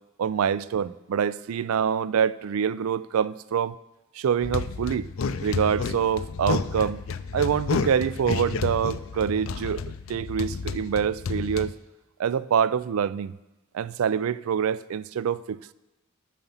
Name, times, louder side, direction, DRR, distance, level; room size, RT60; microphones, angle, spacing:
voice 1, 0.2-3.8 4.1-5.1 5.4-7.0 7.3-9.8 10.1-11.7 12.2-13.3 13.7-15.7, right 7 dB, 75° right, 0.3 m, -25 dB
sound 1, 4.4-11.7, left 5 dB, 65° left, 0.4 m, -31 dB
10.5 x 7.0 x 5.6 m
head